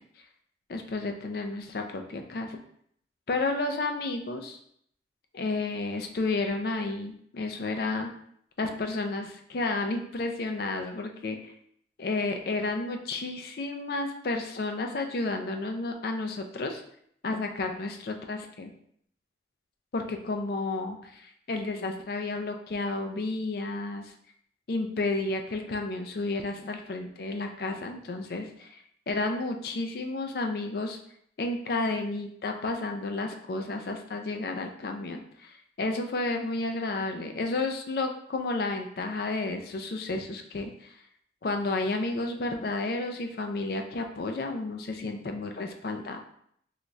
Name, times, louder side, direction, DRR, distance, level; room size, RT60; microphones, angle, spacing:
voice 1, 0.7-2.6 3.3-4.6 5.3-8.1 8.6-11.5 12.0-16.8 17.2-18.7 19.9-24.1 24.7-31.0 31.4-40.9 41.4-46.2, left 2 dB, 55° left, 4 dB, 0.4 m, -31 dB
3.9 x 2.3 x 3.1 m, 0.68 s
head